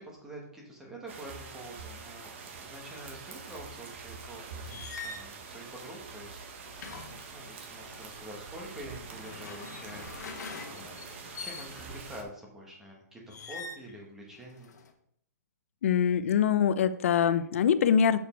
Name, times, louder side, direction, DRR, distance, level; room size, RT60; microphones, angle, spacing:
voice 1, 0.0-10.4 10.7-14.7, right 1 dB, 5° right, -2 dB, 1.5 m, -47 dB
sound 1, 1.1-12.2, right 5 dB, 40° right, 1.3 m, -45 dB
sound 2, 4.6-5.3 6.7-8.0 9.0-12.0 13.3-13.9 14.4-14.9, left 4 dB, 65° left, 1.4 m, -44 dB
voice 2, 15.8-18.2, left 8 dB, 50° left, 14 dB, 0.6 m, -24 dB
7.2 x 6.5 x 4.6 m, 0.66 s
hypercardioid pair, 170°, 10 cm